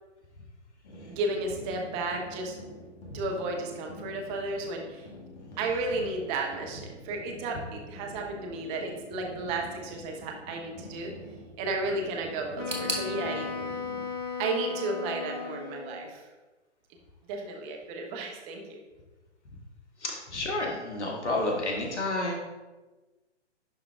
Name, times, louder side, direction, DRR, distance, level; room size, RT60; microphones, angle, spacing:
sound 1, 0.8-14.0, equal, 50° left, 1.8 m, -47 dB
voice 1, 1.1-2.6 3.1-5.1 5.6-11.1 11.6-13.5 14.4-16.3 17.3-18.8, right 2 dB, 20° right, 2 dB, 0.8 m, -33 dB
Wind instrument woodwind instrument, 12.6-16.1, left 5 dB, 20° left, 0.4 m, -36 dB
sound 2, 12.7-15.5 15.8-16.6 16.9-17.0 17.9-18.0, right 2 dB, 85° right, 1.6 m, -40 dB
voice 2, 20.0-22.4, left 2 dB, 70° left, 0 dB, 1.7 m, -30 dB
11.0 x 3.7 x 3.4 m, 1.2 s
figure-of-eight pair, 125°, 36 cm